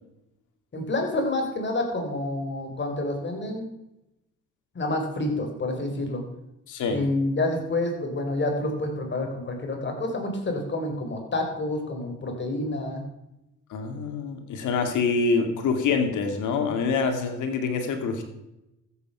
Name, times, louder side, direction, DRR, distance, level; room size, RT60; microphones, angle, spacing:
voice 1, 0.7-3.7 4.7-6.2 6.9-13.0, left 2 dB, 35° left, 3 dB, 4.0 m, -28 dB
voice 2, 6.7-7.0 13.7-18.2, left 4 dB, 80° left, 6 dB, 2.5 m, -26 dB
14.0 x 8.5 x 5.7 m, 0.90 s
cardioid pair, 90°, 30 cm